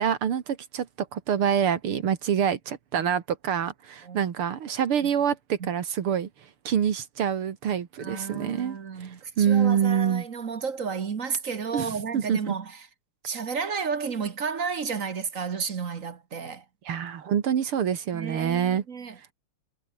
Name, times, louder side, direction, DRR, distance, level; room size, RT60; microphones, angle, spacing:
voice 1, 0.0-10.3 11.7-12.5 16.8-18.8 19.2-19.3, right 8 dB, 80° right, 2.6 m, -26 dB
voice 2, 8.0-12.7 13.2-16.6 18.1-19.2, right 5 dB, 45° right, 1.5 m, -32 dB
omnidirectional pair, 2.4 m